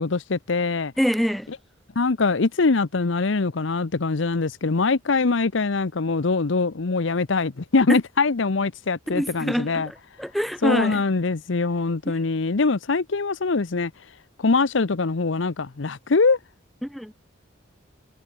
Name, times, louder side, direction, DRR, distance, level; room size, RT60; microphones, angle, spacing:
voice 1, 0.0-0.9 2.0-9.9 10.6-13.9 14.4-16.4, left 4 dB, 70° left, 0.8 m, -23 dB
voice 2, 1.0-1.5 7.9-8.0 9.1-11.0 16.8-17.1, equal, ahead, 1.6 m, -25 dB
head